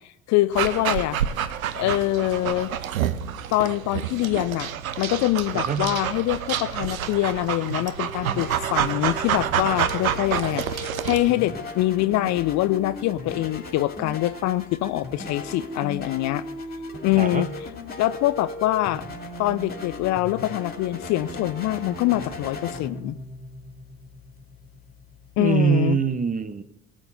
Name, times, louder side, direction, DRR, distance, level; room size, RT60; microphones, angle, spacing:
voice 1, 0.3-1.2 1.8-2.7 3.5-4.7 5.0-16.4 17.0-17.5 18.0-19.0 19.4-23.2 25.4-26.0, left 16 dB, 40° left, 15 dB, 0.5 m, -24 dB
Dog, 0.5-11.3, right 9 dB, 75° right, 0.8 m, -28 dB
voice 2, 5.5-5.9 17.2-17.5 25.4-26.6, right 6 dB, 20° right, 14 dB, 0.8 m, -24 dB
sound 1, 7.3-25.5, left 2 dB, 20° left, 2.6 m, -37 dB
18.5 x 8.9 x 4.1 m, 0.81 s
figure-of-eight pair, 60°, 42 cm